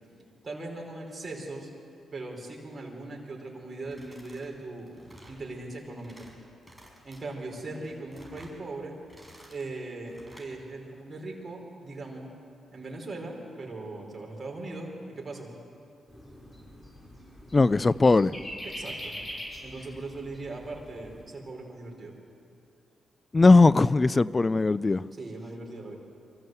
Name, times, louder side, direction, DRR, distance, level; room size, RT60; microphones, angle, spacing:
voice 1, 0.4-1.7 2.1-4.9 5.3-6.3 7.0-9.0 9.5-12.3 12.7-15.5 18.6-19.2 19.6-22.1 25.1-26.0, right 2 dB, 40° right, -1 dB, 5.0 m, -39 dB
sound 1, 3.8-4.5 4.8-5.4 5.8-6.3 6.6-7.2 7.7-8.6 9.0-9.7 10.1-10.5, equal, ahead, 5.9 m, -53 dB
sound 2, 16.1-21.2, equal, 15° left, 6.1 m, -43 dB
voice 2, 17.5-18.4 23.3-25.0, left 3 dB, 30° left, 19 dB, 0.5 m, -19 dB
24.0 x 15.0 x 8.1 m, 2.5 s
supercardioid pair, 60°, 0 cm